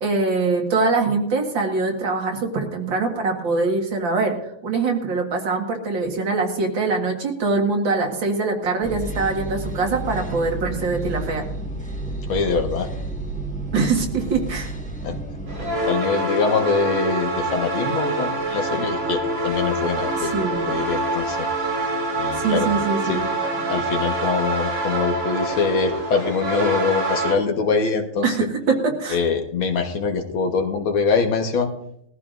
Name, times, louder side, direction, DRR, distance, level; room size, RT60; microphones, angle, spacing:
voice 1, 0.0-4.4 4.6-11.4 13.7-14.7 20.2-20.7 22.3-23.2 28.2-29.2, right 3 dB, 65° right, 2 dB, 2.4 m, -23 dB
sound 1, 8.8-15.7, right 2 dB, 5° left, 1.1 m, -31 dB
voice 2, 12.3-12.9 15.0-15.2 15.8-20.4 20.7-21.5 22.2-22.8 23.0-23.2 23.7-28.4 29.1-31.7, left 4 dB, 75° left, 4 dB, 2.1 m, -23 dB
sound 2, 15.5-27.3, right 2 dB, 85° right, 6.3 m, -25 dB
20.0 x 14.0 x 2.5 m, 0.73 s
omnidirectional pair, 2.3 m